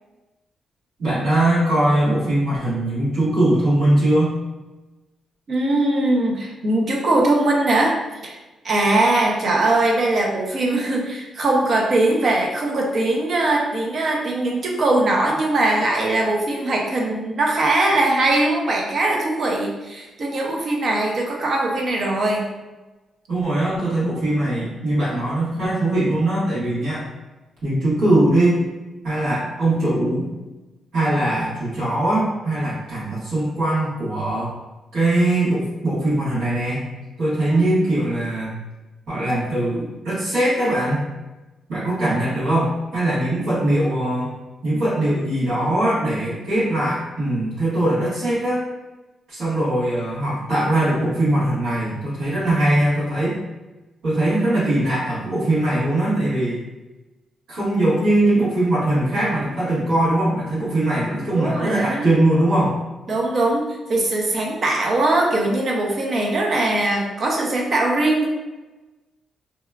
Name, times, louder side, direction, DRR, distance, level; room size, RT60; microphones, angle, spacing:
voice 1, 1.0-4.4 23.3-27.1 27.6-28.6 29.0-30.3 30.9-34.5 34.9-36.9 37.2-38.5 39.1-41.1 41.7-44.3 44.6-48.7 49.3-53.4 54.0-56.6 57.5-62.8, right 1 dB, 85° right, -10 dB, 1.3 m, -21 dB
voice 2, 5.5-8.4 8.6-22.5 37.5-37.6 61.3-62.1 63.1-68.3, right 2 dB, 55° right, 0 dB, 0.6 m, -21 dB
2.8 x 2.2 x 2.3 m, 1.1 s
cardioid pair, 90°, 0 cm